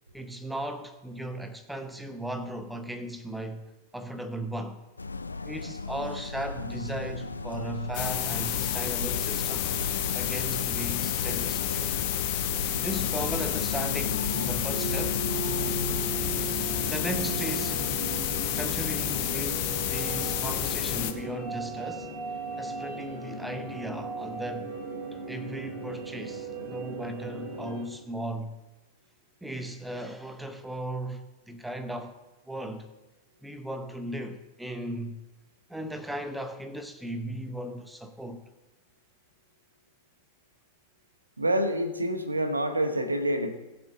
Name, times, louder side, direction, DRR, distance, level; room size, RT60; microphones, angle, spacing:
voice 1, 0.1-3.7 3.9-4.8 5.5-9.7 10.1-12.0 12.7-15.2 16.8-17.9 18.5-22.1 22.6-24.7 25.3-28.6 29.4-32.2 32.5-32.9 33.4-35.2 35.7-38.4, right 1 dB, 5° right, 0.9 m, -37 dB
sound 1, 5.0-16.0, left 3 dB, 80° left, 0.4 m, -37 dB
sound 2, 7.9-21.1, left 12 dB, 45° left, 1.0 m, -30 dB
sound 3, 12.7-27.8, right 2 dB, 35° right, 4.2 m, -36 dB
voice 2, 41.4-43.5, right 1 dB, 80° right, 1.0 m, -27 dB
19.0 x 7.2 x 3.8 m
figure-of-eight pair, 90°, 0 cm